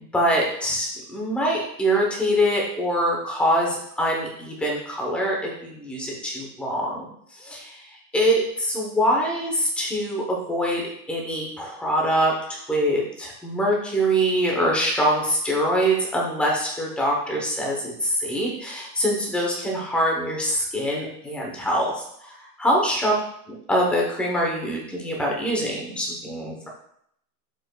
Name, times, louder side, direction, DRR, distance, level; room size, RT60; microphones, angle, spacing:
voice 1, 0.1-7.1 7.4-7.8 8.1-10.8 11.1-12.3 12.7-23.1 23.5-26.7, equal, ahead, -2 dB, 0.7 m, -24 dB
12.5 x 5.0 x 2.2 m, 0.71 s
supercardioid pair, 170°, 47 cm